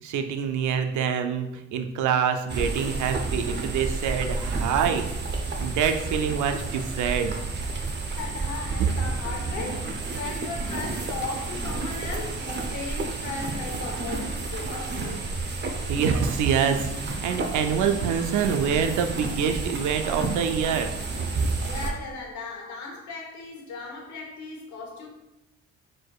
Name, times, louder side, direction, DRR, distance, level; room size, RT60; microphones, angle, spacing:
voice 1, 0.0-5.1 5.6-7.4 10.3-10.4 15.9-20.9, right 7 dB, 75° right, 0.6 m, -26 dB
sound 1, 2.5-21.9, right 3 dB, 35° right, 0.7 m, -31 dB
voice 2, 8.1-15.2 21.6-25.1, left 4 dB, 70° left, 1.1 m, -37 dB
4.7 x 4.2 x 2.4 m
cardioid pair, 90°, 30 cm